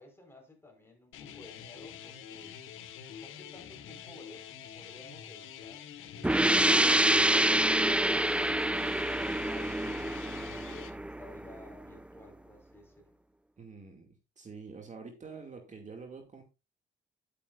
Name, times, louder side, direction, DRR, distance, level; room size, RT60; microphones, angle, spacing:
voice 1, 0.0-2.5 2.8-5.9 8.8-10.4 10.9-13.1, left 2 dB, 10° left, 4.7 m, -54 dB
sound 1, 1.1-10.9, left 9 dB, 85° left, 1.4 m, -46 dB
sound 2, 6.2-11.7, right 1 dB, 5° right, 0.5 m, -27 dB
voice 2, 13.6-16.4, right 5 dB, 40° right, 2.4 m, -47 dB
10.5 x 8.7 x 2.5 m
cardioid pair, 90°, 20 cm